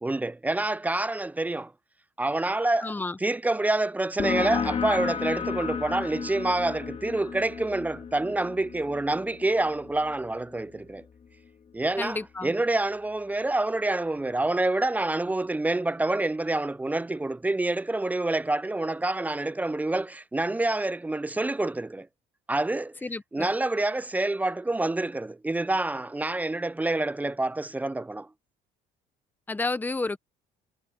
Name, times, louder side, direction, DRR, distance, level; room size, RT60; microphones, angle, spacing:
voice 1, 0.0-1.7 2.2-2.9 3.2-11.0 11.7-22.1 22.5-23.0 23.3-28.3, right 2 dB, 10° right, 0.3 m, -27 dB
voice 2, 2.8-3.2 12.0-12.5 23.0-23.5 29.5-30.2, left 3 dB, 10° left, 0.8 m, -31 dB
sound 1, 4.2-11.5, left 6 dB, 40° left, 3.0 m, -34 dB
cardioid pair, 110°, 17 cm